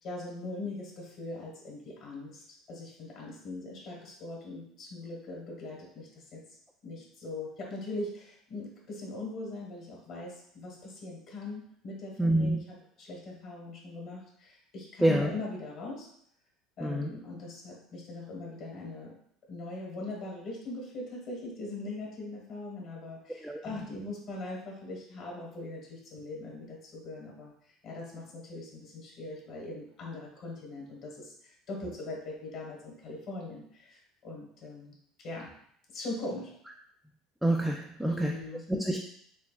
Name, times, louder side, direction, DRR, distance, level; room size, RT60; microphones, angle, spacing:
voice 1, 0.0-6.4 6.8-16.1 16.8-19.2 19.5-35.5 35.9-36.5 38.0-38.6, left 2 dB, 55° left, -2 dB, 1.4 m, -41 dB
voice 2, 12.2-12.6 15.0-15.3 16.8-17.1 23.4-23.6 37.4-38.4 38.7-39.0, right 1 dB, ahead, 1 dB, 0.3 m, -27 dB
4.3 x 3.3 x 2.4 m, 0.67 s
supercardioid pair, 115°, 0 cm